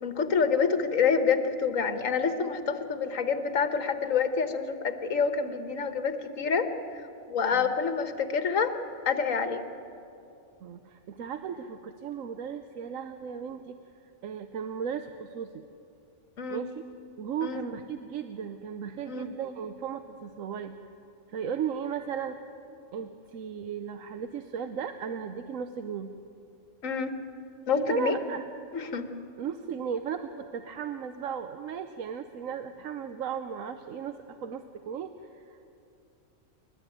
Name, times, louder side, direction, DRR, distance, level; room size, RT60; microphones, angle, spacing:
voice 1, 0.0-6.7 7.3-8.7 9.0-9.6 16.4-16.6 17.4-17.6 19.1-19.3 26.8-27.1 27.7-28.2 28.7-29.1, left 6 dB, 80° left, 8 dB, 1.7 m, -27 dB
voice 2, 10.6-13.8 14.0-15.6 16.5-16.8 17.2-20.7 21.3-22.4 22.9-26.1 27.8-28.4 29.4-35.6, right 7 dB, 85° right, 8 dB, 1.2 m, -36 dB
29.5 x 12.5 x 9.1 m, 2.7 s
omnidirectional pair, 1.3 m